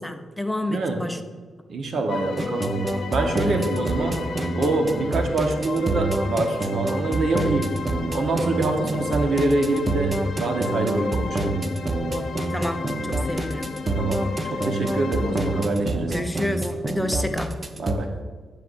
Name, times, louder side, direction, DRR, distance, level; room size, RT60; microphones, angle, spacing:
voice 1, 0.0-1.2 3.5-3.7 12.5-13.7 16.1-17.5, left 1 dB, 10° left, 7 dB, 0.5 m, -29 dB
voice 2, 1.7-2.7 3.1-4.2 4.5-7.7 8.1-11.6 14.0-14.2 14.5-16.2 17.8-18.1, right 2 dB, 60° right, 4 dB, 1.0 m, -25 dB
sound 1, 2.1-15.7, left 4 dB, 60° left, 0.6 m, -33 dB
sound 2, 2.4-17.9, right 2 dB, 30° right, 0.7 m, -27 dB
9.6 x 6.7 x 2.6 m, 1.5 s
cardioid pair, 75°, 0 cm